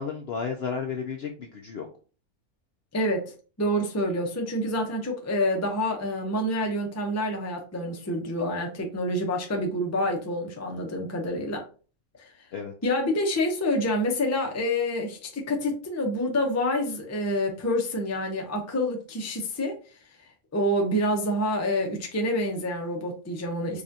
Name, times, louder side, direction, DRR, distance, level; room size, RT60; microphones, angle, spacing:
voice 1, 0.0-1.9 12.5-12.7, left 6 dB, 65° left, 3 dB, 0.6 m, -32 dB
voice 2, 2.9-3.3 3.6-11.6 12.2-12.3 12.8-19.8 20.5-23.8, left 1 dB, 20° left, 1 dB, 0.4 m, -27 dB
4.8 x 2.4 x 2.7 m, 0.37 s
omnidirectional pair, 1.5 m